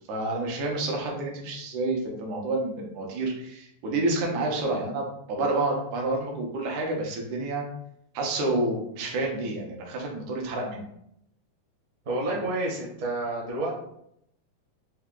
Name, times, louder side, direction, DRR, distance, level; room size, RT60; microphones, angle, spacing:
voice 1, 0.1-7.7 8.1-10.9, right 2 dB, 80° right, 0 dB, 2.3 m, -29 dB
voice 2, 12.0-13.7, right 2 dB, 55° right, -4 dB, 1.0 m, -29 dB
5.4 x 2.2 x 3.7 m, 0.74 s
omnidirectional pair, 3.4 m